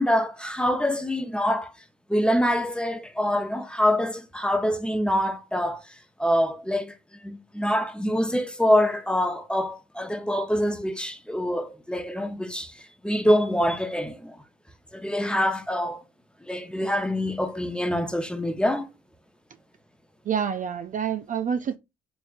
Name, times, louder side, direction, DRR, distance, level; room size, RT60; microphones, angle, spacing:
voice 1, 0.0-1.7 2.1-5.8 6.2-6.9 7.2-12.7 13.0-14.4 14.9-16.0 16.4-18.9, equal, 5° left, 0.7 m, -25 dB
voice 2, 20.3-21.8, right 7 dB, 40° right, 0.4 m, -27 dB
4.0 x 3.4 x 2.5 m
cardioid pair, 90°, 20 cm